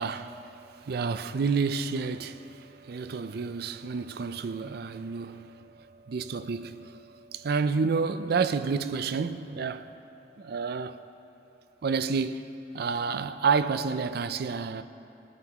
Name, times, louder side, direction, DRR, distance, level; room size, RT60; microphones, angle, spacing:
voice 1, 0.0-9.9 10.4-11.0 11.8-12.5 12.7-14.8, right 5 dB, 60° right, 0.4 m, -30 dB
19.5 x 9.5 x 3.0 m
head